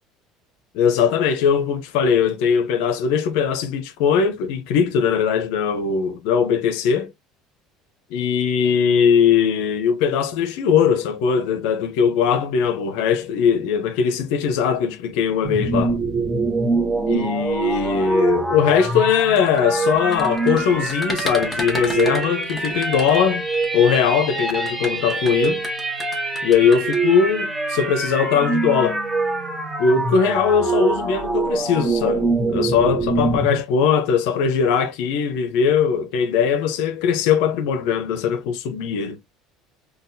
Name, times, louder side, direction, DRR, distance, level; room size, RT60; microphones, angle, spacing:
voice 1, 0.7-7.1 8.1-16.0 17.1-23.4 23.7-25.6 26.4-29.0 29.8-39.2, left 7 dB, 80° left, 0.6 m, -20 dB
sound 1, 15.4-33.6, right 3 dB, 15° right, 0.7 m, -24 dB
sound 2, 19.0-23.7 24.4-27.0, left 1 dB, 10° left, 1.0 m, -33 dB
3.9 x 2.2 x 2.6 m
cardioid pair, 130°, 0 cm